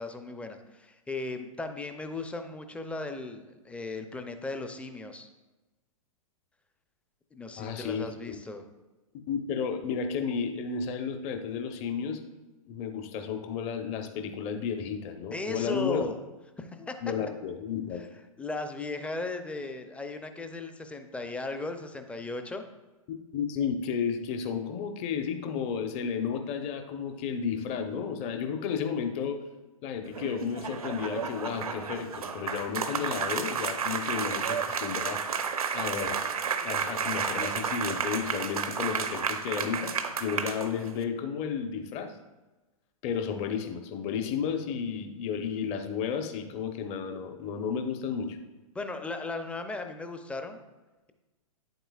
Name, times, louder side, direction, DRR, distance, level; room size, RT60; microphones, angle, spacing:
voice 1, 0.0-5.3 7.3-8.6 15.3-16.2 16.6-17.0 18.4-22.6 48.7-50.6, left 3 dB, 5° left, 7 dB, 0.5 m, -36 dB
voice 2, 7.6-8.4 9.3-12.2 12.6-16.0 17.0-18.0 23.3-29.4 29.8-35.2 35.7-36.3 36.6-39.9 40.2-42.1 43.0-48.4, left 7 dB, 35° left, 6 dB, 0.9 m, -32 dB
sound 1, 30.0-41.0, right 6 dB, 80° right, 0.7 m, -32 dB
9.0 x 7.8 x 2.4 m, 1.1 s
hypercardioid pair, 115°, 18 cm